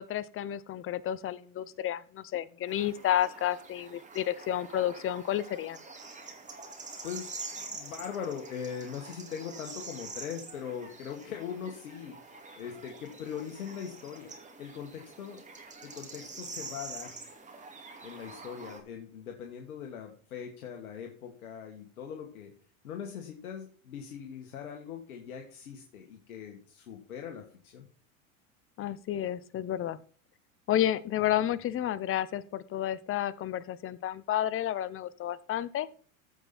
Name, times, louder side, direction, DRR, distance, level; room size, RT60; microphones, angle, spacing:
voice 1, 0.0-5.8 28.8-30.0 30.7-35.9, left 11 dB, 30° left, 18 dB, 0.8 m, -31 dB
sound 1, 2.7-18.8, right 3 dB, 15° right, 2.5 m, -46 dB
voice 2, 6.7-15.4 15.8-17.2 18.0-22.5 22.8-27.9 31.2-31.5, left 8 dB, 85° left, 3 dB, 1.8 m, -41 dB
14.5 x 5.5 x 4.3 m, 0.43 s
hypercardioid pair, 105°, 42 cm